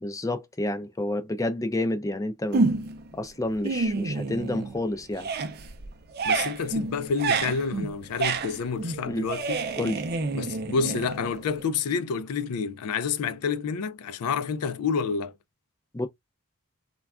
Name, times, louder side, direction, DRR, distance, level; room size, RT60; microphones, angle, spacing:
voice 1, 0.0-2.6 3.1-5.3 9.1-9.3 9.8-10.0 15.9-16.1, left 1 dB, 15° left, 0.4 m, -29 dB
sound 1, 2.5-3.1 3.5-4.8 5.1-11.6, right 3 dB, 45° right, 0.5 m, -29 dB
voice 2, 6.2-9.6 10.3-15.3, left 5 dB, 90° left, 0.4 m, -29 dB
3.2 x 2.3 x 2.3 m
head